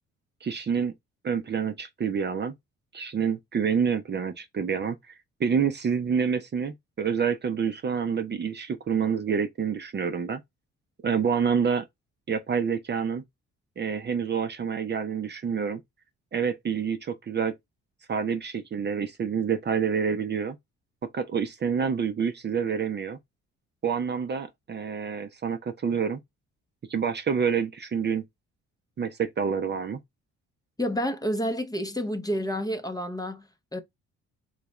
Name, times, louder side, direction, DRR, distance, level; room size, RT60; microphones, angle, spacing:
voice 1, 0.4-0.9 1.2-2.5 2.9-5.1 5.4-10.4 11.0-11.9 12.3-13.2 13.8-15.8 16.3-17.5 18.1-20.6 21.0-23.2 23.8-26.2 26.9-28.2 29.0-30.0, right 6 dB, 35° right, 0.6 m, -27 dB
voice 2, 30.8-33.8, equal, 10° left, 0.7 m, -29 dB
4.0 x 2.3 x 3.1 m
cardioid pair, 90°, 30 cm